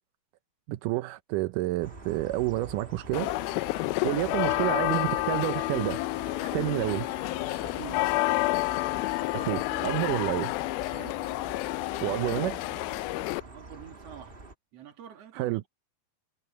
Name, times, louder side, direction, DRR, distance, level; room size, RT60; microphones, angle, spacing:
voice 1, 0.7-3.3 4.0-6.0 6.4-7.1 9.3-10.5 12.0-12.6 15.4-15.6, right 18 dB, 80° right, 1.9 m, -29 dB
sound 1, 1.8-14.5, right 2 dB, 20° right, 1.5 m, -46 dB
sound 2, 3.1-13.4, left 21 dB, 80° left, 2.3 m, -30 dB
Wind instrument woodwind instrument, 6.0-12.1, left 18 dB, 65° left, 0.9 m, -42 dB
voice 2, 7.6-8.1 9.4-10.4 10.9-11.2 13.4-14.4 14.7-15.7, right 9 dB, 45° right, 2.6 m, -48 dB
omnidirectional pair, 4.4 m